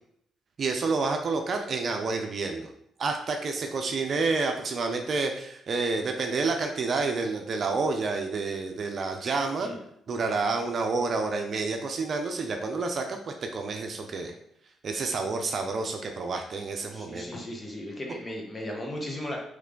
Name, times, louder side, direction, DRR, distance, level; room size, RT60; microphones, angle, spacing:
voice 1, 0.6-2.7 3.0-9.7 10.1-14.3 14.8-17.2, right 3 dB, 55° right, 4 dB, 0.5 m, -29 dB
voice 2, 16.9-19.4, left 1 dB, 25° left, 0 dB, 1.3 m, -36 dB
3.3 x 3.2 x 3.8 m, 0.72 s
supercardioid pair, 55°, 0 cm